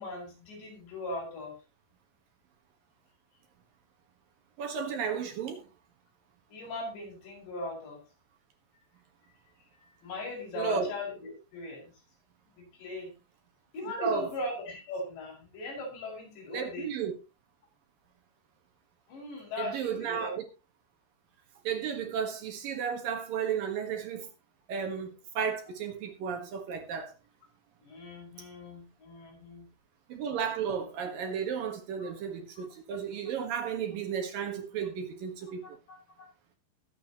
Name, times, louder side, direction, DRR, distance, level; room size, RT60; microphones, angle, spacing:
voice 1, 0.0-1.6 6.5-8.0 9.8-11.9 12.6-13.1 13.7-16.9 19.1-20.3 27.8-29.7 32.0-32.1 32.6-32.7 35.9-36.3, left 1 dB, 70° left, 7.7 m, -39 dB
voice 2, 4.6-5.7 10.5-10.9 13.8-14.3 16.5-17.1 19.6-20.4 21.6-24.3 24.7-27.1 30.1-35.8, right 7 dB, 60° right, 2.6 m, -33 dB
21.5 x 8.2 x 3.0 m
omnidirectional pair, 5.3 m